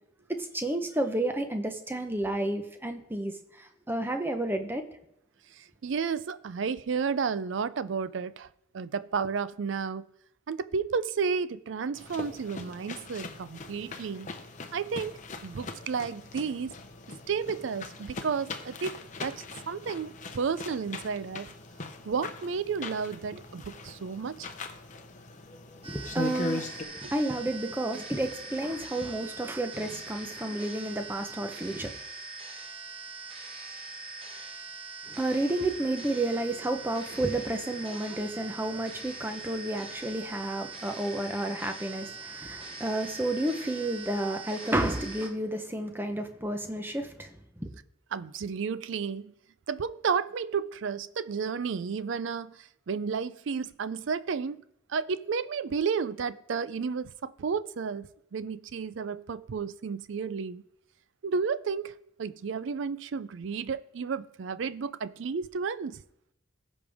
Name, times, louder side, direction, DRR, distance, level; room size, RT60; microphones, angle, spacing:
voice 1, 0.3-4.8 25.9-31.9 35.1-47.3 47.6-47.7, right 1 dB, 10° right, 0.8 m, -31 dB
voice 2, 5.6-8.5 8.7-10.0 10.5-14.3 14.7-16.7 17.3-21.5 22.1-24.5 48.1-49.3 49.7-52.6 52.9-54.6 54.9-60.6 61.2-61.9 62.2-66.0, right 5 dB, 65° right, 0.4 m, -32 dB
sound 1, 11.9-26.8, left 3 dB, 35° left, 0.8 m, -40 dB
sound 2, 25.8-45.3, right 4 dB, 30° right, 1.1 m, -42 dB
15.5 x 5.3 x 3.5 m
head